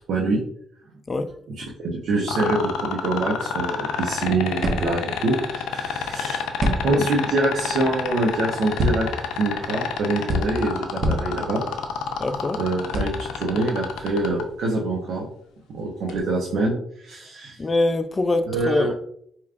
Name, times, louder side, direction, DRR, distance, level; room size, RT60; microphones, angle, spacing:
voice 1, 0.1-0.4 1.5-6.5 6.8-9.1 9.4-11.6 12.3-15.2 15.7-17.6 18.5-18.9, right 2 dB, 70° right, -3 dB, 0.8 m, -25 dB
sound 1, 2.3-14.4 16.1-16.2, left 8 dB, 90° left, 0.4 m, -28 dB
sound 2, 3.8-14.6, equal, 45° right, 0.9 m, -30 dB
voice 2, 12.2-12.6 17.6-18.9, left 2 dB, 25° left, 10 dB, 0.4 m, -23 dB
4.9 x 3.0 x 2.4 m, 0.67 s
cardioid pair, 90°, 0 cm